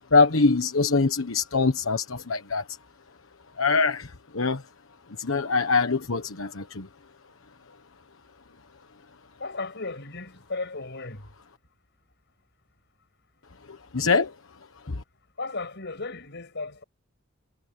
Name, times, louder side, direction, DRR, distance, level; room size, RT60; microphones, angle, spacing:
voice 1, 0.1-2.6 3.6-4.6 5.2-6.9 13.9-14.3 14.9-15.0, left 4 dB, 85° left, 1.2 m, -23 dB
voice 2, 9.4-11.3 15.4-16.8, left 3 dB, 60° left, 6.5 m, -35 dB
head